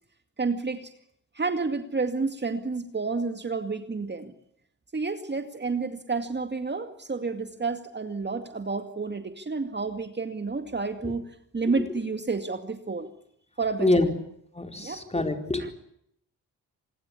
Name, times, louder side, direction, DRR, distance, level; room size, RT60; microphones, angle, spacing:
voice 1, 0.4-0.9 1.3-4.3 4.9-11.2 11.5-13.1 13.6-14.1 14.8-15.0 15.6-15.7, right 4 dB, 30° right, 7 dB, 2.3 m, -30 dB
voice 2, 14.6-15.6, left 2 dB, 20° left, 5 dB, 4.4 m, -25 dB
26.5 x 20.5 x 8.5 m, 0.72 s
cardioid pair, 85°, 35 cm